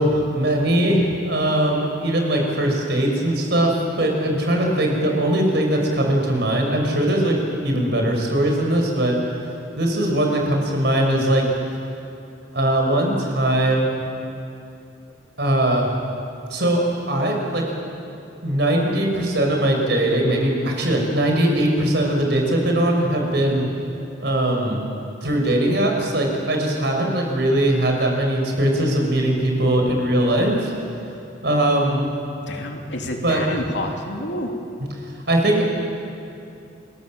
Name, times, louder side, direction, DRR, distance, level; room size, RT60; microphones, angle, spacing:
voice 1, 0.0-9.2 9.8-11.4 12.5-14.0 15.4-15.9 16.5-17.7 18.4-23.7 24.2-24.9 25.2-30.7 31.4-32.1 33.2-33.4 35.3-35.6, right 1 dB, 60° right, 1 dB, 5.6 m, -20 dB
voice 2, 32.4-34.5, left 1 dB, 65° left, 2 dB, 3.0 m, -29 dB
29.5 x 22.0 x 7.5 m, 2.7 s
head